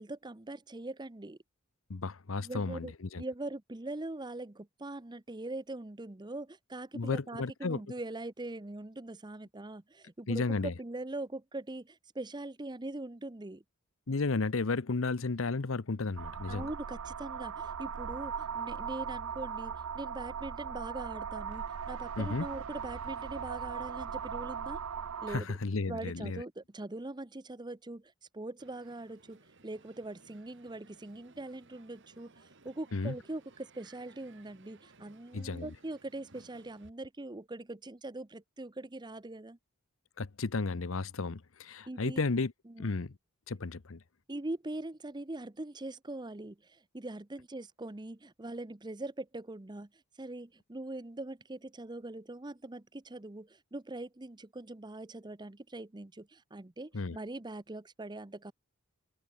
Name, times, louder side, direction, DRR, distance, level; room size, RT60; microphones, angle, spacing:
voice 1, 0.0-1.4 2.4-13.6 16.5-24.8 25.2-25.6 25.9-39.6 41.9-42.2 42.7-42.9 44.3-49.9 50.2-58.5, right 2 dB, 20° right, 0.8 m, -42 dB
voice 2, 1.9-3.2 6.9-7.8 10.3-10.7 14.1-16.7 22.2-22.5 25.3-26.4 32.9-33.1 35.3-35.7 40.2-42.5 42.8-43.1 43.5-44.0 56.9-57.2, left 3 dB, 65° left, 0.8 m, -33 dB
sound 1, 16.2-25.4, right 7 dB, 85° right, 0.6 m, -39 dB
Crowd, 28.6-36.9, right 3 dB, 60° right, 2.5 m, -61 dB
open air
head